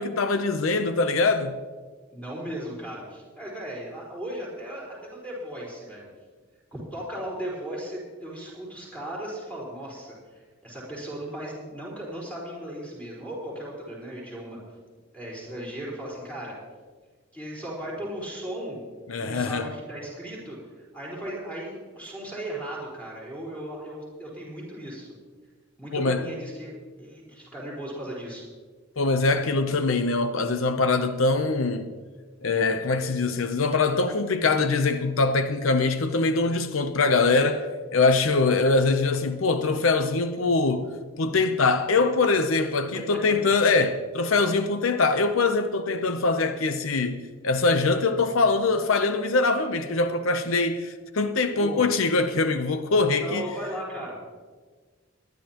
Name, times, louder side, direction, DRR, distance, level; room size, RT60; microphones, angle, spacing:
voice 1, 0.0-1.6 19.1-19.7 25.9-26.3 29.0-31.9 32.4-53.5, left 3 dB, 90° left, 0.7 m, -23 dB
voice 2, 2.1-6.0 6.7-14.6 15.1-16.6 17.3-18.8 19.2-25.1 25.8-28.4 42.9-43.0 51.5-51.8 53.2-54.3, right 1 dB, 5° left, 4.5 m, -36 dB
21.5 x 11.0 x 3.0 m
head